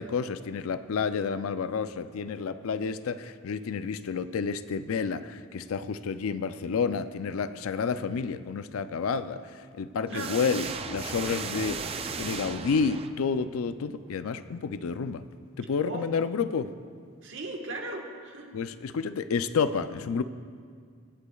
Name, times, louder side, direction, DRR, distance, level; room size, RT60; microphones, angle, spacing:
voice 1, 0.0-15.2 15.6-16.7 18.5-20.2, left 5 dB, 80° left, 12 dB, 0.4 m, -30 dB
sound 1, 10.1-13.5, right 5 dB, 25° right, 0.3 m, -36 dB
voice 2, 10.1-10.4 15.9-16.1 17.2-18.5, right 2 dB, 60° right, 1 dB, 1.4 m, -37 dB
24.0 x 8.2 x 2.3 m, 2.1 s
head